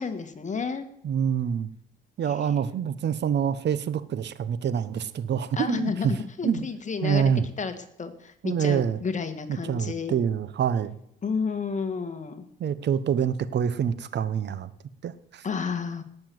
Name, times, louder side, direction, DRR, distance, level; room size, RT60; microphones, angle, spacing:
voice 1, 0.0-0.9 2.3-2.6 5.6-7.3 7.6-10.1 11.2-12.5 15.4-16.0, left 5 dB, 40° left, 7 dB, 2.0 m, -31 dB
voice 2, 1.0-1.7 2.2-6.1 6.4-6.7 7.0-7.5 8.4-9.0 9.5-11.0 12.6-14.7 15.0-15.4, right 8 dB, 60° right, 15 dB, 1.1 m, -26 dB
18.5 x 7.1 x 8.0 m, 0.73 s
cardioid pair, 90°, 20 cm